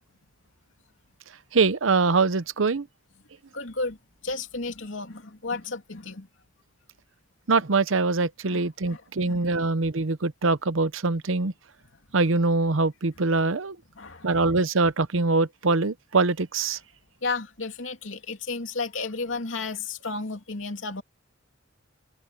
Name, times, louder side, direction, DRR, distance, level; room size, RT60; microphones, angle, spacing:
voice 1, 1.5-2.9 7.5-11.5 12.1-13.8 14.2-16.8, right 3 dB, 75° right, 0.8 m, -23 dB
voice 2, 3.5-4.0 4.2-6.3 8.5-9.4 13.9-14.5 17.2-21.0, left 3 dB, 70° left, 2.9 m, -33 dB
head